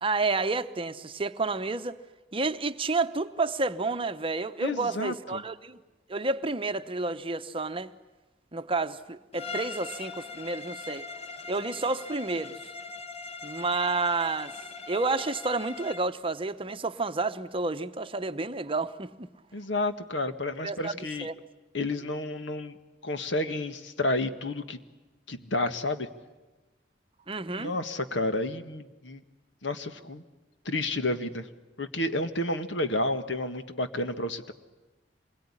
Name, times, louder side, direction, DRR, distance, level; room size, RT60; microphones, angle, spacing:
voice 1, 0.0-2.0 2.3-5.8 6.1-7.9 8.5-11.0 11.5-12.5 13.4-14.5 14.9-19.3 20.6-21.3 27.3-27.7, right 3 dB, 30° right, 0.9 m, -30 dB
voice 2, 4.6-5.4 19.5-21.3 21.7-22.8 23.0-24.8 25.3-26.1 27.6-29.2 29.6-30.2 30.7-31.5 31.8-34.5, left 2 dB, 80° left, 1.7 m, -30 dB
Bowed string instrument, 9.3-16.1, left 4 dB, 35° left, 1.1 m, -40 dB
26.5 x 21.5 x 10.0 m
head